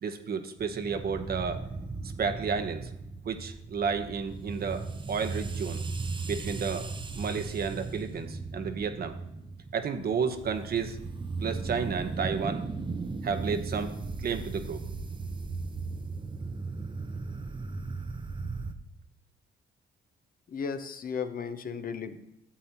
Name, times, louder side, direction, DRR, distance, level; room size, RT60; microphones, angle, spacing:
voice 1, 0.0-1.6 2.2-2.9 3.2-5.8 6.3-6.9 7.2-9.2 9.7-11.0 11.4-12.6 13.2-14.8, right 6 dB, 50° right, 8 dB, 0.9 m, -32 dB
sound 1, 0.6-18.7, right 3 dB, 25° right, 0.6 m, -37 dB
voice 2, 20.5-22.2, left 6 dB, 45° left, 9 dB, 0.7 m, -35 dB
11.5 x 7.5 x 2.9 m, 0.88 s
cardioid pair, 90°, 20 cm